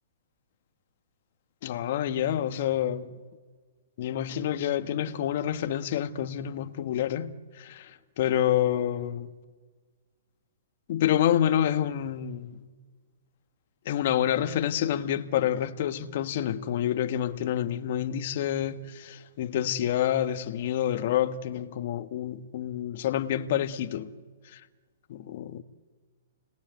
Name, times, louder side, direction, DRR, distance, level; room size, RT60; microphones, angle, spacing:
voice 1, 1.6-3.1 4.0-9.3 10.9-12.7 13.8-24.1 24.5-24.6 25.1-25.6, left 10 dB, 55° left, 1.4 m, -28 dB
29.0 x 20.0 x 9.3 m
hypercardioid pair, 145°, 0 cm